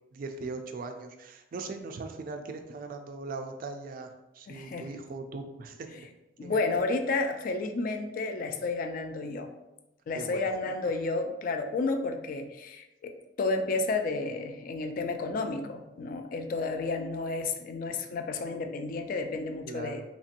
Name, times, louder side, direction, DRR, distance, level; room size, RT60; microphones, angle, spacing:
voice 1, 0.1-6.1 6.4-6.6 10.1-10.4 16.8-16.9 19.7-20.0, right 3 dB, 50° right, 6 dB, 0.3 m, -39 dB
voice 2, 4.5-4.9 6.4-9.5 10.1-20.0, left 3 dB, 45° left, 6 dB, 0.3 m, -31 dB
2.9 x 2.7 x 2.5 m, 0.96 s
head